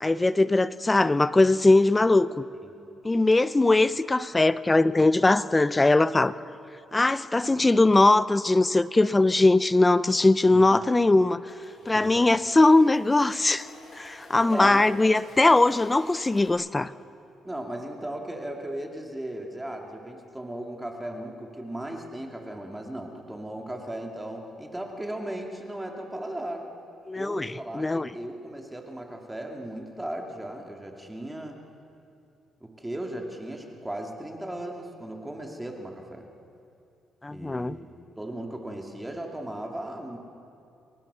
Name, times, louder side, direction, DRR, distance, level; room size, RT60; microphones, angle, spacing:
voice 1, 0.0-2.4 3.0-6.3 6.9-11.4 11.9-13.7 14.0-16.9 27.1-28.1 37.2-37.8, left 2 dB, 15° left, 15 dB, 0.6 m, -21 dB
sound 1, 11.0-16.5, left 2 dB, 45° left, 6.2 m, -52 dB
voice 2, 11.8-12.3 14.4-14.8 17.4-26.7 27.1-31.6 32.6-36.3 37.3-37.9 38.2-40.2, right 1 dB, 10° right, 1 dB, 2.5 m, -36 dB
29.0 x 19.5 x 6.9 m, 2.6 s
cardioid pair, 120°, 0 cm